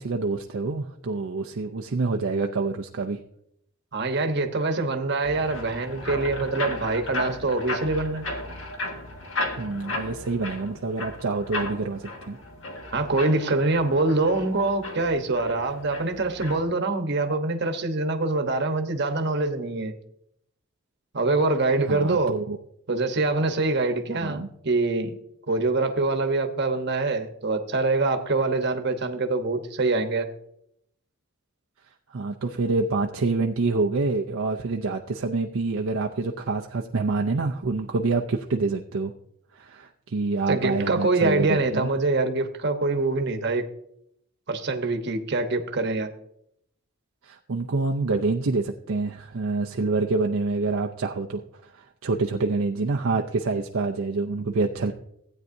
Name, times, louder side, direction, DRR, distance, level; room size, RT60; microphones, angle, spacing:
voice 1, 0.0-3.2 9.6-12.4 21.9-22.6 24.2-24.5 32.1-39.1 39.5-41.9 47.2-54.9, right 3 dB, 70° right, 0.5 m, -27 dB
voice 2, 3.9-8.2 12.9-19.9 21.1-22.4 22.9-25.1 25.5-30.3 40.5-43.7 44.5-46.1, right 3 dB, 55° right, 1.0 m, -24 dB
sound 1, 5.2-16.6, left 2 dB, 60° left, 1.7 m, -35 dB
15.5 x 9.0 x 2.7 m
head